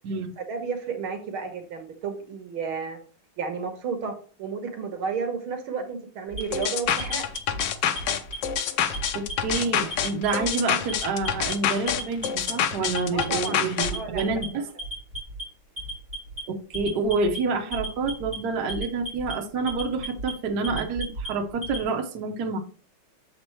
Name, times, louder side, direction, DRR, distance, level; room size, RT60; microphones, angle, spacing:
voice 1, 0.4-3.0 3.4-7.3 13.1-13.6 13.9-14.2, right 5 dB, 75° right, 6 dB, 1.8 m, -32 dB
Alarm, 6.3-7.6 8.0-8.6 8.9-9.6 9.9-10.5 10.9-11.5 11.9-12.5 12.8-13.5 13.8-14.4 14.8-15.4 15.8-16.4 16.7-17.4 17.7-18.4 18.7-19.3 19.7-20.3 20.6-21.8, right 1 dB, 25° right, 3.4 m, -34 dB
sound 1, 6.5-13.9, left 9 dB, 70° left, 1.1 m, -27 dB
voice 2, 9.1-14.7 16.5-22.6, right 4 dB, 60° right, 2 dB, 1.2 m, -28 dB
7.0 x 4.4 x 3.1 m, 0.41 s
omnidirectional pair, 2.3 m